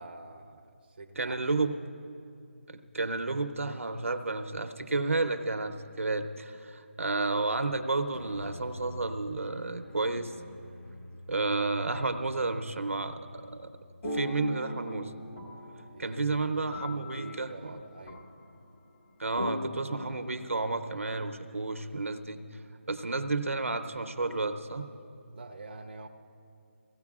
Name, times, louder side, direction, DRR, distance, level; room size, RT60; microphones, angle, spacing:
voice 1, 0.0-1.4 15.9-18.3 25.3-26.1, right 3 dB, 45° right, 3 dB, 0.6 m, -46 dB
voice 2, 1.2-1.7 2.7-10.3 11.3-13.7 14.1-15.1 16.0-17.5 19.2-22.4 22.9-24.9, right 3 dB, 80° right, 8 dB, 0.7 m, -31 dB
sound 1, 8.1-14.6, left 1 dB, 15° left, 0.9 m, -48 dB
sound 2, 14.0-18.9 19.3-21.6, left 1 dB, 30° left, 1.3 m, -40 dB
20.0 x 16.0 x 2.4 m, 2.5 s
figure-of-eight pair, 165°, 7 cm